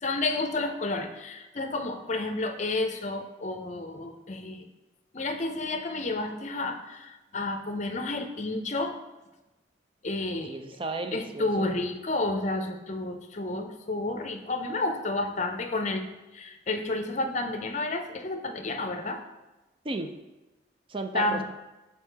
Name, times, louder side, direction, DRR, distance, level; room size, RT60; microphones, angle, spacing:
voice 1, 0.0-4.7 5.1-9.0 10.0-10.5 11.1-16.0 16.3-19.2 21.1-21.4, left 2 dB, 40° left, 6 dB, 0.6 m, -31 dB
voice 2, 10.4-11.7 19.8-20.2 20.9-21.4, right 2 dB, 30° right, 6 dB, 0.5 m, -34 dB
6.4 x 4.3 x 4.6 m, 1.1 s
head